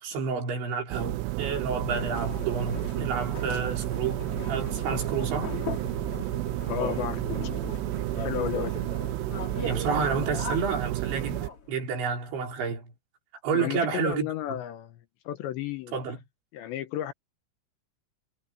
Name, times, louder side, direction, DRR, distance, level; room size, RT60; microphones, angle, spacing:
voice 1, 0.0-5.5 9.6-12.9 13.4-14.3 15.9-16.2, right 5 dB, 70° right, 6.8 m, -30 dB
sound 1, 0.9-11.5, right 20 dB, 90° right, 2.3 m, -31 dB
sound 2, 1.8-11.7, left 4 dB, 35° left, 3.4 m, -38 dB
voice 2, 6.7-7.3 7.6-7.8 8.2-8.9 13.5-15.0 15.3-15.9 16.5-17.1, left 12 dB, 75° left, 3.2 m, -33 dB
omnidirectional pair, 5.4 m